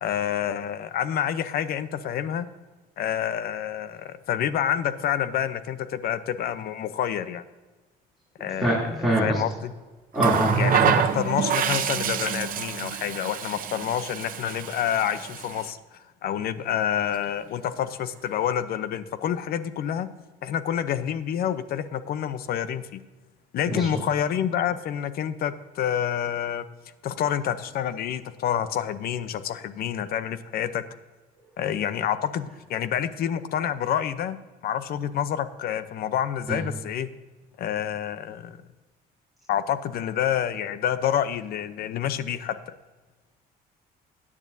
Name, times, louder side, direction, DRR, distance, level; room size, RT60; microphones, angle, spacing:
voice 1, 0.0-2.5 3.0-7.4 8.4-8.9 9.2-9.7 10.5-15.8 16.2-20.1 20.4-23.0 23.5-26.7 27.0-30.8 31.6-34.4 34.6-37.1 37.6-38.6 39.5-42.6, left 9 dB, 65° left, 13 dB, 0.7 m, -28 dB
voice 2, 8.6-9.4 10.1-10.9 23.7-23.9 36.5-36.6, right 1 dB, ahead, -8 dB, 3.0 m, -24 dB
Water tap faucet, 10.2-15.7 16.9-17.1, right 8 dB, 55° right, 0.8 m, -27 dB
16.5 x 9.8 x 2.7 m, 1.3 s
cardioid pair, 110°, 17 cm